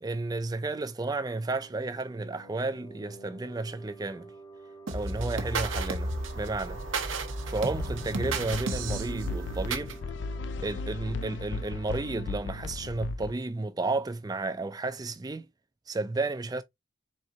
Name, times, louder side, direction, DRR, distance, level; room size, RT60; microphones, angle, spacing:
voice 1, 0.0-4.3 4.9-6.8 7.5-10.0 10.6-15.5 15.9-16.6, right 3 dB, 20° right, 0.4 m, -32 dB
sound 1, 1.4-12.8, right 3 dB, 20° left, 0.9 m, -49 dB
sound 2, 4.9-9.9, right 2 dB, 85° right, 0.9 m, -33 dB
sound 3, 7.7-13.3, left 3 dB, 65° left, 0.4 m, -37 dB
4.4 x 3.7 x 2.5 m
head